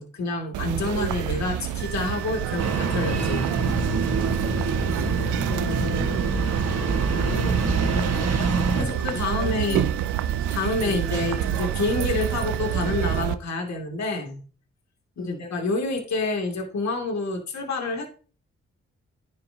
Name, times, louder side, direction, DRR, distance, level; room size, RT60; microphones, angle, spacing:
voice 1, 0.0-3.5 8.8-9.9 10.5-14.4 15.2-18.1, left 2 dB, 70° left, 2.7 m, -28 dB
sound 1, 0.5-13.4, right 11 dB, 85° right, 0.6 m, -28 dB
sound 2, 1.8-13.2, right 8 dB, 40° right, 2.8 m, -40 dB
Engine starting, 2.6-8.8, right 4 dB, 60° right, 1.7 m, -25 dB
voice 2, 4.4-4.8 5.1-6.3 6.9-9.8 10.8-11.1 15.2-15.5, left 4 dB, 45° left, 1.8 m, -37 dB
9.9 x 8.0 x 2.9 m
supercardioid pair, 50°, 29 cm